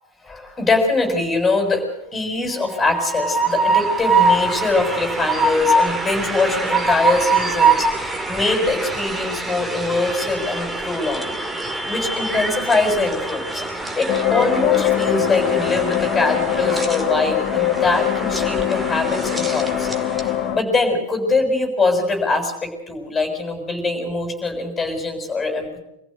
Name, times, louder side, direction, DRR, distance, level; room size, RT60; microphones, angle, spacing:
voice 1, 0.2-11.4 11.8-19.9 20.5-25.8, left 3 dB, 10° left, 3 dB, 6.8 m, -23 dB
Train, 2.6-20.4, right 3 dB, 10° right, 2.0 m, -24 dB
sound 1, 14.1-20.6, left 12 dB, 45° left, 1.6 m, -22 dB
25.5 x 15.0 x 8.1 m, 0.83 s
figure-of-eight pair, 90°, 0 cm